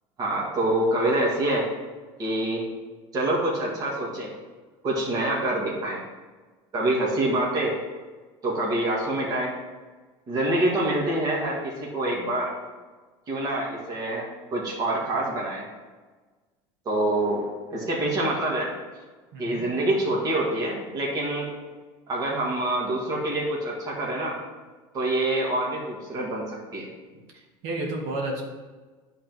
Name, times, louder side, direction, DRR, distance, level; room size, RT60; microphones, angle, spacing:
voice 1, 0.2-1.7 2.2-2.6 3.1-4.3 4.8-6.0 6.7-7.8 8.4-9.5 10.3-12.5 13.3-14.3 14.5-15.6 16.9-17.4 17.7-18.7 19.4-21.5 22.1-24.4 24.9-26.9, right 1 dB, 30° right, -4 dB, 1.9 m, -26 dB
voice 2, 19.3-19.7 27.3-28.4, right 2 dB, 70° right, -1 dB, 1.8 m, -31 dB
9.9 x 3.8 x 6.1 m, 1.3 s
cardioid pair, 140°, 12 cm